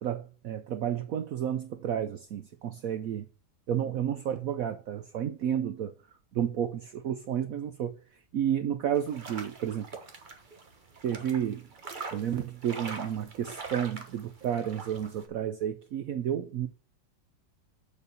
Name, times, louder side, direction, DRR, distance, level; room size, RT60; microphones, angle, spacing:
voice 1, 0.0-3.3 3.7-5.9 6.4-7.9 8.3-9.9 11.0-11.7 12.1-16.7, right 9 dB, 75° right, 0.8 m, -31 dB
sound 1, 8.9-15.3, right 4 dB, 30° right, 1.0 m, -43 dB
6.9 x 4.3 x 6.7 m
omnidirectional pair, 2.1 m